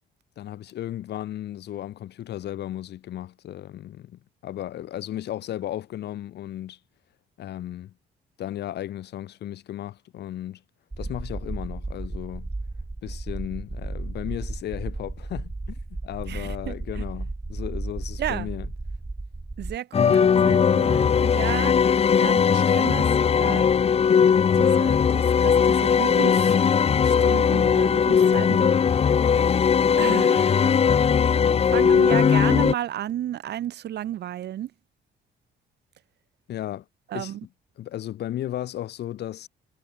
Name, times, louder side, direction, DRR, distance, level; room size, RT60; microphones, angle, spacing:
voice 1, 0.4-6.8 7.4-7.9 8.4-10.6 11.0-12.5 13.0-18.7 36.5-36.8 37.1-37.3 37.8-39.5, left 12 dB, 75° left, 2.8 m, -35 dB
sound 1, 10.9-19.8, right 2 dB, 15° right, 1.2 m, -34 dB
voice 2, 16.3-17.0 18.2-18.5 19.6-21.7 22.2-23.6 24.3-26.6 27.0-29.1 30.0-31.0 31.7-34.7 37.1-37.4, right 12 dB, 75° right, 6.7 m, -33 dB
sound 2, 19.9-32.7, left 7 dB, 35° left, 0.9 m, -19 dB
cardioid pair, 120°, 18 cm